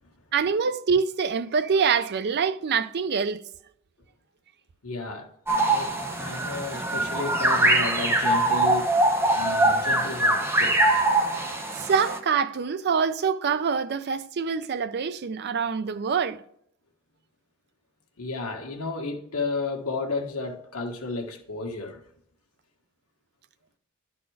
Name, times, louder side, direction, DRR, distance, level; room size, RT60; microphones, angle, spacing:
voice 1, 0.3-3.4 11.8-16.4, right 6 dB, 50° right, 0.4 m, -25 dB
voice 2, 4.8-5.3 5.6-8.9 9.3-11.0 18.2-22.0, left 3 dB, 85° left, 1.3 m, -33 dB
sound 1, 5.5-12.2, right 1 dB, 10° right, 0.7 m, -23 dB
11.0 x 4.2 x 4.6 m
head